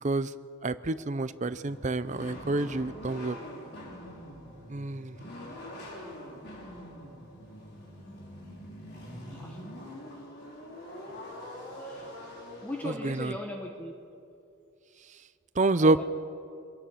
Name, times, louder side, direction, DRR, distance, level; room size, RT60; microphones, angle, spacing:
voice 1, 0.6-3.4 4.7-5.2 13.0-13.3 15.6-16.0, right 2 dB, 35° right, 14 dB, 0.7 m, -27 dB
sound 1, 1.6-12.9, left 1 dB, 55° left, 4.9 m, -44 dB
voice 2, 9.3-9.6 10.7-11.1 11.8-12.1 12.6-13.9 15.7-16.0, left 1 dB, 10° left, 0 dB, 1.4 m, -39 dB
25.5 x 21.0 x 5.9 m, 2.6 s
head